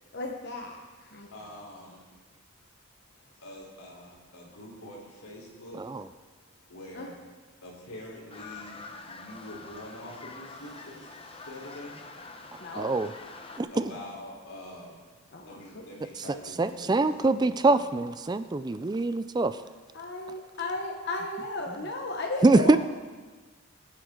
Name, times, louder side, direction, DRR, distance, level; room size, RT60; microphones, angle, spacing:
voice 1, 0.1-1.3 6.9-7.1 12.6-12.9 15.3-15.8 19.9-22.8, left 2 dB, 50° left, 1 dB, 1.2 m, -35 dB
voice 2, 1.3-2.0 3.4-5.8 6.7-7.2 7.6-11.0 11.5-12.0 13.7-15.1 15.5-17.8, left 1 dB, 90° left, -2 dB, 3.8 m, -45 dB
sound 1, 8.3-13.6, left 3 dB, 25° left, 0.9 m, -45 dB
voice 3, 12.8-13.1 13.6-13.7 16.6-19.5 22.4-22.8, right 2 dB, 20° right, 12 dB, 0.3 m, -23 dB
22.0 x 9.7 x 3.8 m, 1.3 s
head